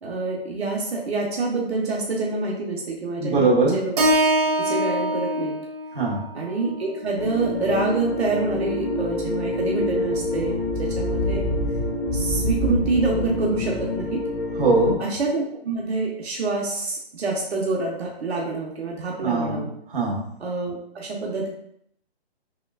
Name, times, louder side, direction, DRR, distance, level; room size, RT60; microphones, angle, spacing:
voice 1, 0.0-3.9 4.6-5.5 6.3-10.5 10.8-11.4 12.1-14.2 15.0-19.7 20.4-21.5, right 3 dB, 80° right, -2 dB, 1.1 m, -26 dB
voice 2, 3.2-3.8 5.9-6.2 14.6-15.0 19.2-19.6 19.9-20.2, right 3 dB, 55° right, -3 dB, 1.2 m, -21 dB
Keyboard (musical), 4.0-8.2, right 1 dB, 40° right, 0.6 m, -25 dB
sound 1, 7.2-15.0, left 2 dB, ahead, 0.6 m, -26 dB
5.9 x 2.3 x 2.3 m, 0.73 s
hypercardioid pair, 155°, 32 cm